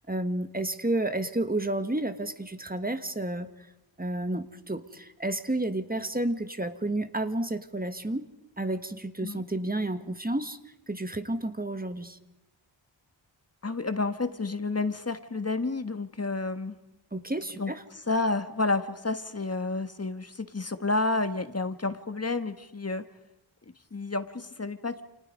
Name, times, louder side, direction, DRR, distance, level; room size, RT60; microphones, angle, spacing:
voice 1, 0.1-3.5 4.0-8.2 8.6-10.6 10.9-12.2 17.1-17.8, right 1 dB, 20° right, 9 dB, 1.6 m, -31 dB
voice 2, 13.6-16.8 17.6-17.7 18.1-23.0 23.9-25.0, left 3 dB, 30° left, 10 dB, 1.4 m, -30 dB
29.0 x 28.0 x 5.3 m, 0.91 s
wide cardioid pair, 75°, 46 cm